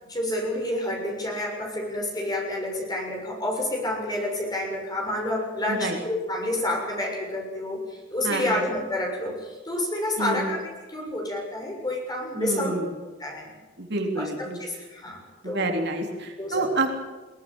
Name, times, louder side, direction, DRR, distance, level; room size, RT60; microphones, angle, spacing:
voice 1, 0.1-10.6 10.9-12.8 13.2-13.5 14.2-15.7 16.4-16.7, left 1 dB, 20° left, 0 dB, 6.9 m, -29 dB
voice 2, 8.2-8.7 10.2-10.5 12.4-12.9 13.8-14.6 15.4-16.9, right 2 dB, 55° right, 3 dB, 3.4 m, -28 dB
22.0 x 18.5 x 9.0 m, 1.3 s
head